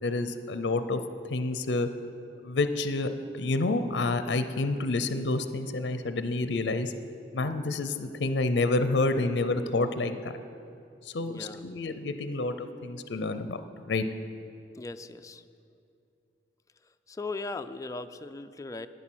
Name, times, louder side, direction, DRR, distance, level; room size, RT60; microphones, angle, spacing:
voice 1, 0.0-1.0 1.3-1.9 2.4-3.1 3.3-6.9 7.3-10.3 11.1-13.6 13.9-14.0, left 2 dB, 70° left, 10 dB, 0.5 m, -28 dB
voice 2, 11.2-11.6 14.8-15.4 17.1-18.9, left 3 dB, 20° left, 9 dB, 0.3 m, -38 dB
9.8 x 9.4 x 6.2 m, 2.5 s
head